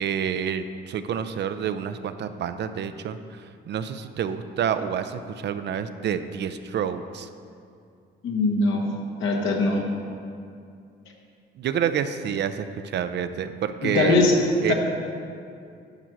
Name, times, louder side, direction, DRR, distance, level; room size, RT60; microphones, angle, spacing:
voice 1, 0.0-7.3 11.6-14.2 14.6-14.7, right 8 dB, 60° right, 10 dB, 0.5 m, -28 dB
voice 2, 8.2-8.9 9.2-9.8 13.8-14.4 14.7-14.8, left 3 dB, 75° left, 0 dB, 1.4 m, -21 dB
10.5 x 4.5 x 6.1 m, 2.4 s
cardioid pair, 90°, 20 cm